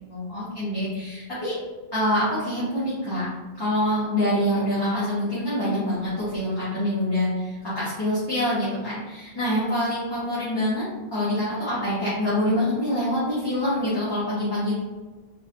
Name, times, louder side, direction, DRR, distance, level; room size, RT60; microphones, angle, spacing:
voice 1, 0.1-1.6 1.9-3.3 3.6-10.8 11.1-14.7, left 1 dB, 25° left, -11 dB, 1.1 m, -25 dB
4.0 x 2.6 x 2.8 m, 1.3 s
omnidirectional pair, 1.0 m